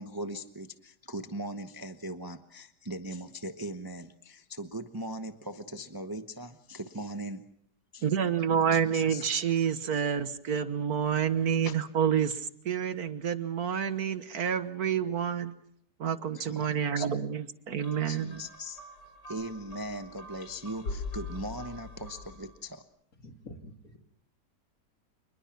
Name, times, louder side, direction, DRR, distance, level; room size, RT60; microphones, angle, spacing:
voice 1, 0.0-7.4 7.9-8.1 8.7-9.3 11.6-11.7 16.3-17.1 18.0-18.8 19.3-22.8, right 1 dB, 15° right, 8 dB, 0.9 m, -39 dB
voice 2, 8.0-15.5 16.0-18.3, right 8 dB, 65° right, 12 dB, 1.7 m, -28 dB
sound 1, 17.8-22.6, left 3 dB, 75° left, 5.2 m, -42 dB
voice 3, 23.2-24.0, left 1 dB, 55° left, 5 dB, 3.0 m, -47 dB
28.0 x 21.0 x 6.0 m, 0.68 s
omnidirectional pair, 1.8 m